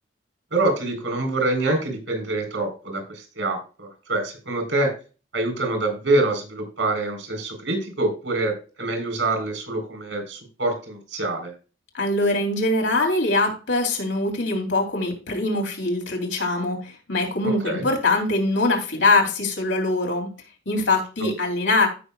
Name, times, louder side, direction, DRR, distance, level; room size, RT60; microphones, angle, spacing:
voice 1, 0.5-4.9 5.3-11.5 17.6-17.8, right 2 dB, 75° right, 5 dB, 3.9 m, -25 dB
voice 2, 11.9-20.3 20.7-21.9, left 2 dB, 75° left, 2 dB, 3.1 m, -23 dB
15.5 x 6.1 x 2.3 m, 0.34 s
head